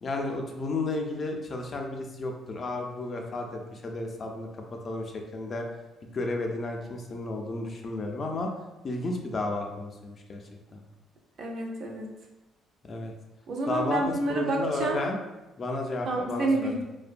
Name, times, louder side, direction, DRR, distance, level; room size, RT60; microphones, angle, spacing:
voice 1, 0.0-4.5 4.8-5.7 6.0-8.5 8.8-10.4 10.7-10.8 12.8-13.1 13.7-14.0 14.3-15.2 15.6-16.7, left 2 dB, 40° left, 2 dB, 0.3 m, -32 dB
voice 2, 11.4-12.1 13.5-15.0 16.1-16.8, right 2 dB, 55° right, 1 dB, 0.4 m, -29 dB
2.5 x 2.1 x 2.5 m, 1.1 s
cardioid pair, 115°, 0 cm